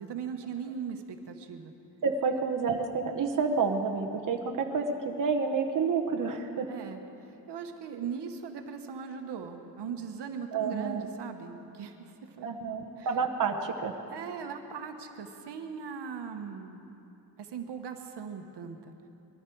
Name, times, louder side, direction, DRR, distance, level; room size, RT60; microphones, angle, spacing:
voice 1, 0.0-1.7 6.7-7.0 7.5-12.5 13.0-13.1 14.1-16.8 17.4-18.9, right 6 dB, 75° right, 5 dB, 1.2 m, -39 dB
voice 2, 2.0-6.7 10.5-11.1 12.4-14.0, right 5 dB, 50° right, 4 dB, 1.0 m, -29 dB
21.5 x 14.0 x 4.6 m, 2.9 s
cardioid pair, 115°, 41 cm